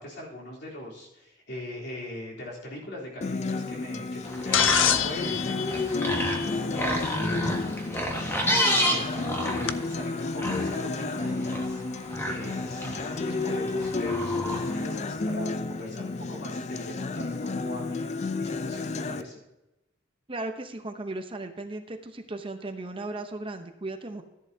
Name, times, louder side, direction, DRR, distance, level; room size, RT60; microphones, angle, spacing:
voice 1, 0.0-8.0 8.7-18.1 18.4-19.4, left 1 dB, 60° left, -4 dB, 3.5 m, -41 dB
Acoustic guitar, 3.2-19.2, left 3 dB, 35° left, 0.5 m, -31 dB
sound 1, 4.2-15.0, equal, 15° left, 1.4 m, -31 dB
sound 2, 4.5-6.8 8.4-8.5 9.7-9.8, left 10 dB, 90° left, 0.5 m, -26 dB
voice 2, 20.3-24.2, right 2 dB, 30° right, 7 dB, 0.8 m, -36 dB
13.5 x 10.5 x 2.7 m, 0.95 s
head